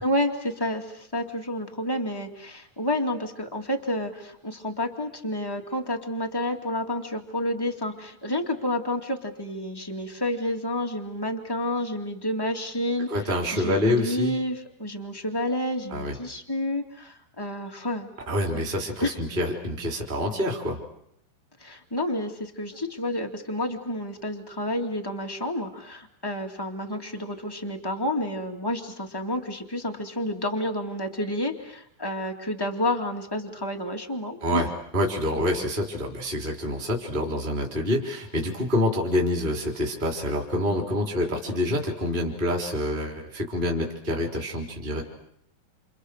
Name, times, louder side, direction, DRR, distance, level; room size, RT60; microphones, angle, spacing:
voice 1, 0.0-13.1 13.5-18.1 18.5-18.6 19.0-19.2 21.6-34.6, left 1 dB, 10° left, 2 dB, 1.0 m, -30 dB
voice 2, 13.1-14.3 15.9-16.1 18.3-20.8 34.4-34.7 34.9-45.0, left 1 dB, 15° right, 0 dB, 3.5 m, -27 dB
29.0 x 28.5 x 6.6 m, 0.73 s
omnidirectional pair, 4.6 m